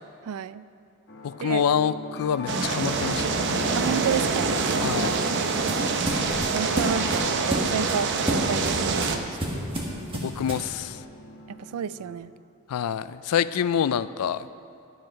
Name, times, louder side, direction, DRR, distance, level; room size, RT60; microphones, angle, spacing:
voice 1, 0.2-0.6 1.4-1.7 3.7-4.6 6.5-9.4 11.5-12.3, right 8 dB, 80° right, 16 dB, 0.3 m, -31 dB
sound 1, 1.1-12.2, left 1 dB, 45° left, 0.9 m, -41 dB
voice 2, 1.2-3.5 4.8-5.1 10.1-11.0 12.7-14.5, left 8 dB, 90° left, 16 dB, 0.4 m, -26 dB
sound 2, 2.5-9.2, right 4 dB, 50° right, 0.6 m, -26 dB
sound 3, 4.7-10.7, right 1 dB, 25° right, 1.5 m, -31 dB
11.0 x 7.7 x 5.7 m, 2.5 s
head